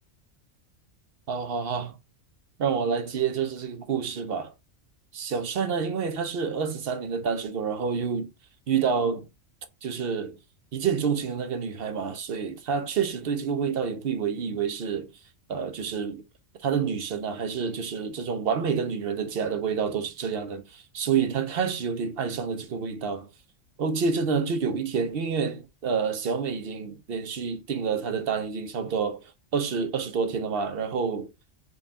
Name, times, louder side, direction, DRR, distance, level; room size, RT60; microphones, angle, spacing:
voice 1, 1.3-2.0 2.6-4.5 5.1-8.3 8.7-9.3 9.8-10.4 10.7-15.1 15.5-16.2 16.6-23.3 23.8-31.3, right 6 dB, 60° right, 0.7 m, -28 dB
3.8 x 2.3 x 3.6 m
omnidirectional pair, 1.3 m